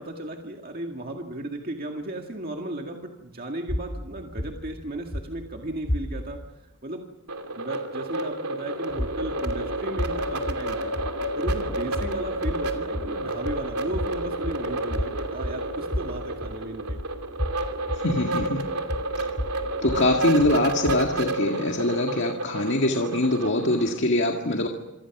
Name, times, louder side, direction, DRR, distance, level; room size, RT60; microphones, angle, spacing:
voice 1, 0.0-7.1 7.5-10.9 11.3-17.0, right 1 dB, 40° right, 2 dB, 2.0 m, -35 dB
sound 1, 3.7-6.5 8.9-21.2, equal, 25° left, 1.2 m, -33 dB
sound 2, 7.3-24.0, right 2 dB, 85° right, 2.7 m, -31 dB
voice 2, 17.9-18.6 19.8-24.7, left 1 dB, 55° left, 1 dB, 1.9 m, -23 dB
27.0 x 24.5 x 6.1 m, 0.98 s
head